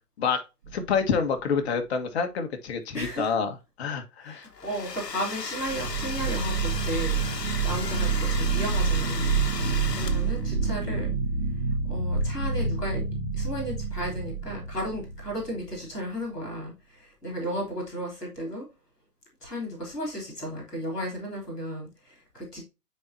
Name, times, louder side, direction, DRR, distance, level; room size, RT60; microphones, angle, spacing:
sound 1, 0.6-1.2 5.6-15.8, right 4 dB, 45° right, 1.9 m, -28 dB
voice 1, 0.7-4.5, left 6 dB, 40° left, 1.6 m, -27 dB
voice 2, 2.9-3.3 4.2-11.1 11.7-13.0 13.3-18.6 19.4-22.6, equal, ahead, 0.5 m, -34 dB
Domestic sounds home sounds, 4.4-10.5, left 5 dB, 90° left, 1.2 m, -36 dB
9.4 x 4.5 x 2.7 m
figure-of-eight pair, 135°, 47 cm